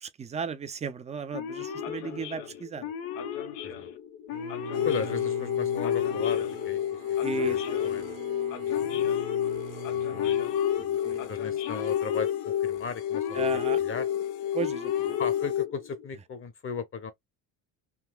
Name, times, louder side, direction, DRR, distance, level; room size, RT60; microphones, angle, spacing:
voice 1, 0.0-2.8 7.2-7.9 8.5-9.1 10.8-11.3 13.3-13.8 14.5-15.2, right 6 dB, 15° right, 0.3 m, -36 dB
Male speech man speaking / Siren, 1.3-16.1, left 8 dB, 90° left, 0.8 m, -38 dB
Bowed string instrument, 4.3-10.6, right 8 dB, 45° right, 0.7 m, -44 dB
sound 1, 4.7-15.7, left 10 dB, 65° left, 0.5 m, -29 dB
voice 2, 4.8-7.0 7.3-8.2 9.8-10.4 10.7-14.1 15.2-17.1, left 5 dB, 30° left, 0.7 m, -37 dB
3.8 x 2.2 x 2.2 m
supercardioid pair, 95°, 44 cm